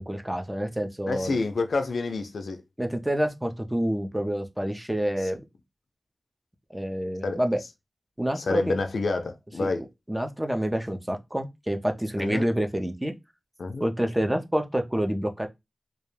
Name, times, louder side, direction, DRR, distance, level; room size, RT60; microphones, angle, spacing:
voice 1, 0.0-1.4 2.8-5.4 6.7-7.6 8.2-8.8 9.6-9.7 10.1-13.1 13.8-15.5, equal, 10° right, 0.4 m, -28 dB
voice 2, 1.1-2.6 7.2-7.4 8.4-9.8 12.2-12.5 13.6-13.9, left 3 dB, 85° left, 0.3 m, -28 dB
2.3 x 2.1 x 3.1 m
wide cardioid pair, 65°, 0 cm